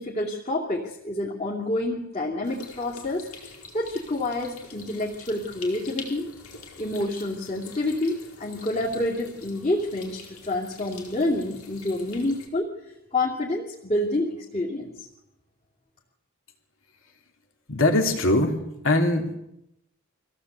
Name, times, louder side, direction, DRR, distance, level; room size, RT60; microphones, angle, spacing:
voice 1, 0.0-3.3 3.7-6.3 6.8-12.7 13.1-15.1, left 1 dB, 30° left, -4 dB, 2.9 m, -28 dB
sound 1, 2.4-12.5, left 4 dB, 85° left, 4.8 m, -45 dB
voice 2, 17.7-19.4, left 2 dB, 65° left, 4 dB, 3.1 m, -22 dB
24.5 x 16.5 x 8.3 m, 0.85 s
head